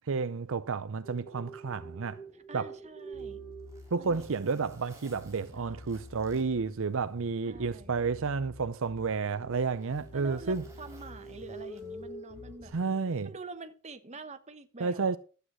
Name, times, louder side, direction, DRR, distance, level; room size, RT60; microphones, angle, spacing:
voice 1, 0.1-2.2 2.5-2.7 3.9-10.6 12.7-13.3 14.8-15.2, right 4 dB, 65° right, 0.6 m, -31 dB
sound 1, 1.0-4.8 9.2-13.6, right 3 dB, 10° left, 1.1 m, -47 dB
voice 2, 2.3-3.4 4.0-4.2 5.5-6.0 7.4-7.9 10.1-12.7 13.2-15.2, right 3 dB, 30° right, 1.0 m, -46 dB
Zipper (clothing), 3.0-7.5 7.9-8.0 8.7-12.2 13.4-13.6, right 2 dB, 15° right, 3.3 m, -60 dB
Bass guitar, 3.1-12.7, left 2 dB, 80° left, 4.3 m, -50 dB
12.5 x 8.1 x 6.1 m
head